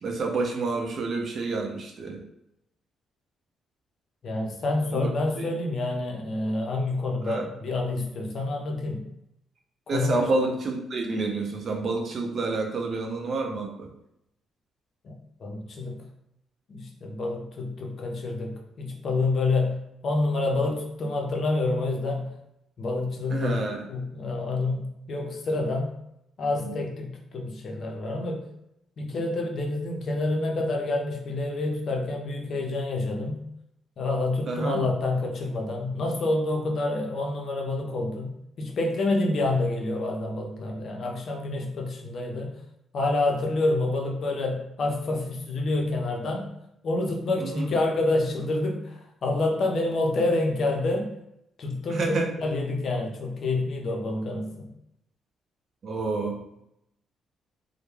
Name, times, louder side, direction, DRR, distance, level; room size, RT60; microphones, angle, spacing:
voice 1, 0.0-2.2 4.9-5.1 5.4-5.5 7.2-7.4 9.9-13.9 23.3-23.8 26.6-26.7 34.5-34.8 47.4-47.7 51.9-52.3 55.8-56.4, right 3 dB, 50° right, 1 dB, 0.5 m, -29 dB
voice 2, 4.2-9.0 9.9-10.2 15.0-15.1 15.4-16.0 16.7-19.8 20.0-22.3 22.8-23.6 23.9-25.9 26.4-28.4 29.0-33.4 34.0-38.3 38.6-42.5 42.9-46.5 46.8-51.1 51.6-54.7, left 2 dB, 55° left, 1 dB, 0.5 m, -28 dB
2.2 x 2.0 x 3.1 m, 0.81 s
cardioid pair, 90°, 0 cm